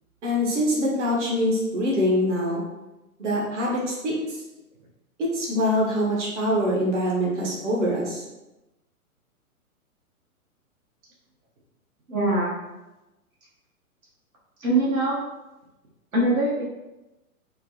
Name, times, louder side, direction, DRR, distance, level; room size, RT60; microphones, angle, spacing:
voice 1, 0.2-2.6 3.2-4.4 5.2-8.2, equal, 55° right, -3 dB, 1.1 m, -24 dB
voice 2, 12.1-12.5 14.6-15.2 16.1-16.6, right 1 dB, 70° right, -5 dB, 1.1 m, -22 dB
4.3 x 2.1 x 2.8 m, 1.0 s
figure-of-eight pair, 115°, 44 cm